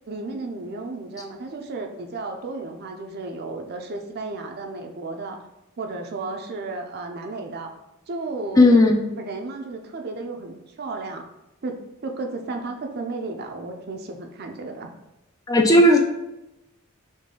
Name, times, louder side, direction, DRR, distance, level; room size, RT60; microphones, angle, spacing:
voice 1, 0.1-5.4 5.8-7.7 8.1-8.7 9.1-11.2 11.6-11.8 12.0-14.9, right 3 dB, 45° right, 4 dB, 0.5 m, -33 dB
voice 2, 8.6-9.0 15.5-16.0, left 1 dB, 15° left, 2 dB, 0.4 m, -14 dB
4.1 x 3.2 x 3.6 m, 0.93 s
head